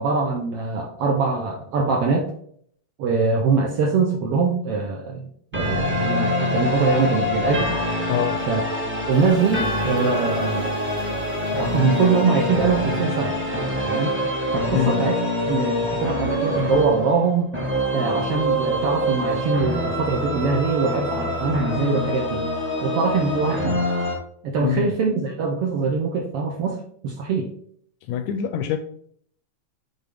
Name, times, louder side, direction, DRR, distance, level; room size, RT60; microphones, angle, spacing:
voice 1, 0.0-2.3 3.0-7.7 8.5-8.6 9.1-10.8 11.5-13.4 13.8-14.2 14.5-15.2 15.4-17.5 17.9-22.5 22.8-23.8 24.4-27.5, right 4 dB, 75° right, 1 dB, 1.4 m, -23 dB
sound 1, 5.5-24.2, left 1 dB, 10° right, 0.6 m, -25 dB
voice 2, 8.1-8.4 14.7-15.0 24.6-24.9 28.1-28.8, left 10 dB, 80° left, 9 dB, 1.7 m, -24 dB
sound 2, 9.1-14.0, equal, 50° right, 2.6 m, -40 dB
9.0 x 3.9 x 3.4 m, 0.62 s
omnidirectional pair, 3.4 m